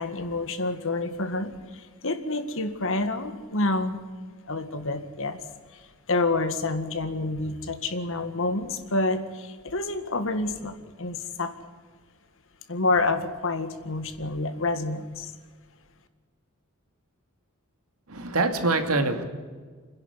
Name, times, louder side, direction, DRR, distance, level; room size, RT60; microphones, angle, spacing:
voice 1, 0.0-1.5 2.0-4.0 4.5-5.4 6.1-11.5 12.7-15.3, left 2 dB, 65° left, 9 dB, 1.8 m, -28 dB
voice 2, 18.1-19.2, right 3 dB, 75° right, 6 dB, 2.3 m, -24 dB
29.0 x 11.0 x 9.9 m, 1.5 s
head